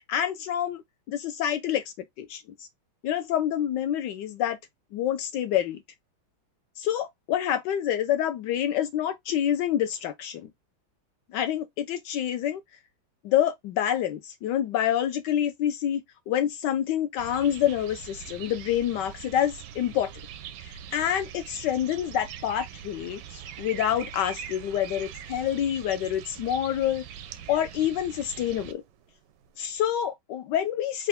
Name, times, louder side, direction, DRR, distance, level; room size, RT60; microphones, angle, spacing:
voice 1, 0.1-1.8 2.2-2.7 3.0-4.6 4.9-5.8 6.8-10.5 11.3-12.6 13.2-20.1 20.6-27.0 27.5-28.8 29.6-31.1, left 10 dB, 75° left, 1.0 m, -27 dB
sound 1, 17.2-29.9, right 9 dB, 70° right, 1.1 m, -43 dB
4.5 x 2.3 x 3.4 m
omnidirectional pair, 2.3 m